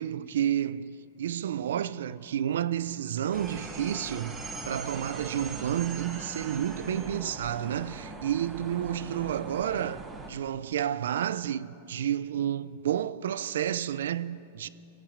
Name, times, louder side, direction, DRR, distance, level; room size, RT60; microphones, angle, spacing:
voice 1, 0.0-10.0 10.3-14.7, right 10 dB, 80° right, 0.4 m, -30 dB
sound 1, 3.3-10.3, right 3 dB, 10° right, 1.0 m, -41 dB
23.0 x 8.6 x 5.0 m
supercardioid pair, 155°, 0 cm